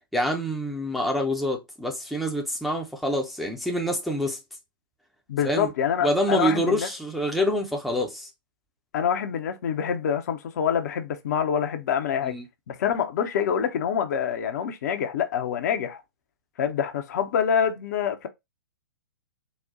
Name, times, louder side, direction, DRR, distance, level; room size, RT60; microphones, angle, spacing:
voice 1, 0.1-4.4 5.4-5.7 6.0-8.3 12.3-12.4, equal, ahead, 0.6 m, -26 dB
voice 2, 5.3-6.9 8.9-12.3 12.7-16.0 16.6-18.3, left 8 dB, 45° left, 0.6 m, -26 dB
4.1 x 2.1 x 3.7 m
figure-of-eight pair, 110°, 12 cm